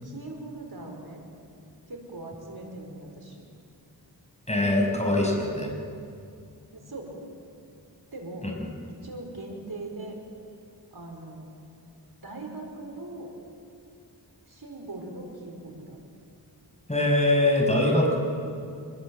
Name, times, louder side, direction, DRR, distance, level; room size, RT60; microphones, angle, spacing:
voice 1, 0.0-1.2 1.9-3.4 6.7-7.2 8.1-8.5 9.0-10.2 10.9-11.5 12.2-13.3 14.4-16.0, right 2 dB, 65° right, 1 dB, 4.7 m, -40 dB
voice 2, 4.5-5.7 8.4-8.5 16.9-18.2, left 1 dB, 15° left, 0 dB, 5.9 m, -23 dB
26.0 x 21.0 x 7.7 m, 2.4 s
wide cardioid pair, 70°, 40 cm